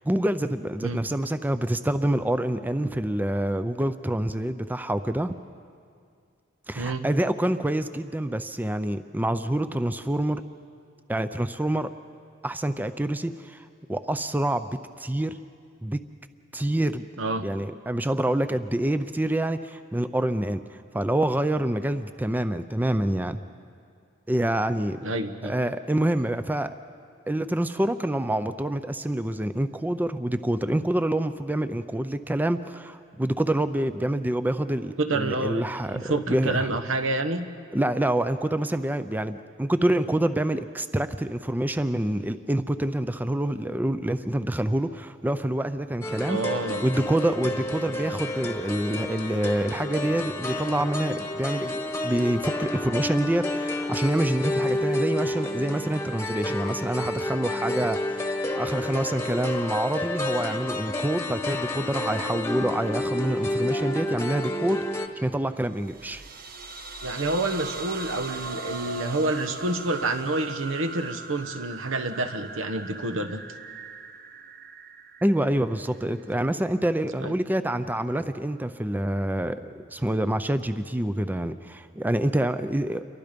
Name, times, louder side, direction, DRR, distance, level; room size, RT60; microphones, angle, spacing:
voice 1, 0.0-5.3 6.7-10.4 11.1-11.9 12.4-14.7 15.0-15.4 15.8-16.0 16.5-17.0 17.4-23.4 24.3-25.0 25.4-26.7 27.3-36.7 37.7-46.4 46.8-66.2 75.2-83.0, right 1 dB, 10° right, 11 dB, 0.5 m, -27 dB
voice 2, 25.0-25.5 35.0-35.7 35.9-37.5 46.3-46.9 67.0-73.4 77.2-77.3, right 2 dB, 80° right, 8 dB, 1.2 m, -28 dB
sound 1, 46.0-65.1, left 1 dB, 15° left, 1.2 m, -30 dB
sound 2, 65.7-76.4, right 3 dB, 50° right, 1.1 m, -39 dB
29.0 x 23.0 x 5.2 m, 2.3 s
head